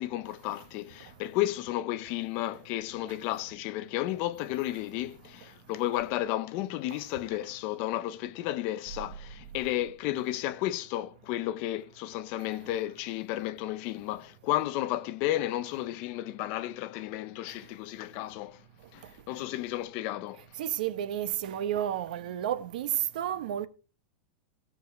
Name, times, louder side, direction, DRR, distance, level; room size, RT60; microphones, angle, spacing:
voice 1, 0.0-18.6 18.9-20.5, left 15 dB, 35° left, 0.7 m, -33 dB
voice 2, 20.6-23.7, right 11 dB, 60° right, 1.2 m, -31 dB
16.5 x 6.8 x 4.6 m
supercardioid pair, 170°, 5 cm